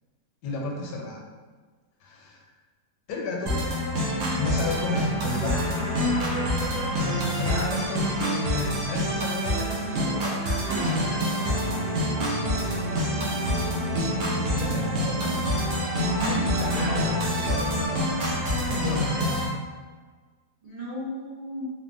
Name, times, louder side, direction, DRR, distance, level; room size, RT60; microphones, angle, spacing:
voice 1, 0.4-1.2 2.0-2.4 3.1-3.5 4.4-5.8 7.0-10.6 14.3-15.1 16.2-18.0 18.5-19.6, left 2 dB, 85° left, -1 dB, 1.2 m, -32 dB
sound 1, 3.5-19.5, equal, 70° right, 1.1 m, -27 dB
sound 2, 4.8-17.5, right 2 dB, 25° right, 1.2 m, -35 dB
voice 2, 15.0-15.4 16.3-16.9 20.6-21.7, left 1 dB, 50° right, -10 dB, 0.5 m, -36 dB
3.2 x 2.1 x 2.5 m, 1.4 s
omnidirectional pair, 1.7 m